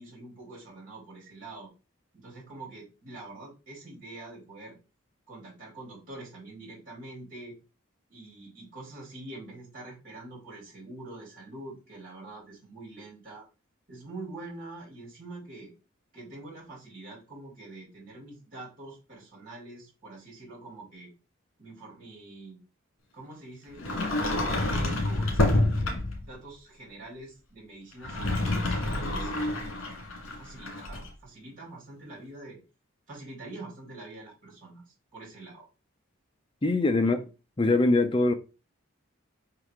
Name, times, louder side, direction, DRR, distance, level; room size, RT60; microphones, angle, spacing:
voice 1, 0.0-1.7 2.1-4.8 5.3-7.6 8.1-13.4 13.9-15.7 16.1-21.1 21.6-22.6 23.1-29.7 30.3-32.6 33.1-34.8 35.1-35.7 37.0-37.2, right 2 dB, 45° right, 3.6 m, -45 dB
Sliding door, 23.8-26.3 27.9-31.1, left 1 dB, 75° left, 1.7 m, -28 dB
voice 2, 36.6-37.2 37.6-38.3, left 2 dB, 25° left, 0.6 m, -22 dB
5.5 x 4.8 x 3.6 m
head